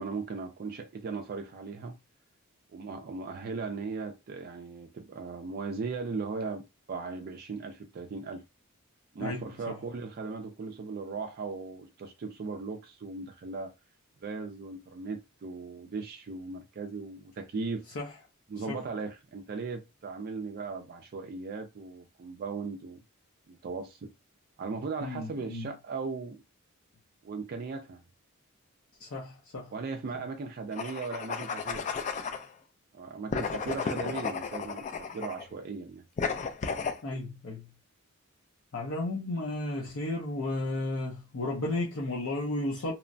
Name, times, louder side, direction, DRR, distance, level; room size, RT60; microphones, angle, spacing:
voice 1, 0.0-2.0 2.7-8.4 9.1-13.7 14.2-17.8 18.5-23.0 23.5-24.1 24.6-26.4 27.2-28.0 29.7-31.9 32.9-36.0, right 4 dB, 45° right, 0.3 m, -38 dB
voice 2, 25.0-25.7 29.0-29.7 37.0-37.7 38.7-42.9, left 2 dB, 65° left, 0.6 m, -33 dB
sound 1, 30.7-32.5 33.3-35.4 36.2-37.0, left 5 dB, 35° left, 0.3 m, -33 dB
2.9 x 2.1 x 2.5 m
head